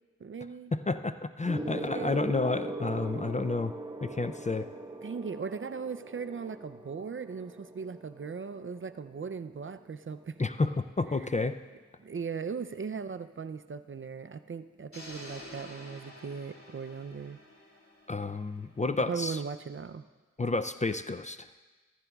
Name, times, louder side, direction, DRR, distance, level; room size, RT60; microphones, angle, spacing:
voice 1, 0.2-0.7 1.7-2.2 5.0-10.3 12.0-17.4 19.1-20.0, right 5 dB, 40° right, 11 dB, 0.5 m, -38 dB
voice 2, 0.7-3.7 4.0-4.7 10.4-11.6 18.1-19.4 20.4-21.5, left 3 dB, 25° left, 11 dB, 0.4 m, -30 dB
Gong, 1.5-11.2 12.2-12.4, right 2 dB, 15° right, 0.9 m, -42 dB
sound 1, 14.9-18.9, left 1 dB, 45° left, 2.5 m, -49 dB
15.0 x 14.5 x 2.3 m, 1.3 s
cardioid pair, 50°, 31 cm